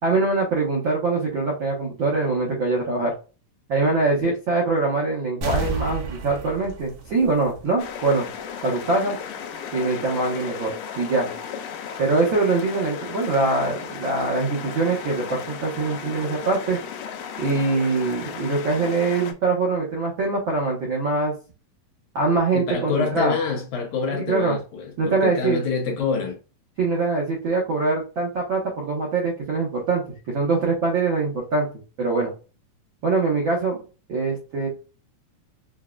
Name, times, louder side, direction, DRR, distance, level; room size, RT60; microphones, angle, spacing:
voice 1, 0.0-3.1 3.7-8.3 8.6-9.2 9.7-11.3 12.0-16.8 17.4-21.3 22.1-23.3 24.1-24.6 25.0-25.6 26.8-31.7 32.0-32.3 33.0-33.8 34.1-34.7, right 3 dB, 80° right, 1.1 m, -23 dB
sound 1, 5.4-8.0 8.4-8.5, right 4 dB, 60° right, 1.5 m, -31 dB
sound 2, 7.8-19.3, left 7 dB, 85° left, 2.4 m, -35 dB
voice 2, 22.5-26.4, left 5 dB, 70° left, 2.1 m, -26 dB
6.5 x 2.3 x 2.4 m
omnidirectional pair, 4.0 m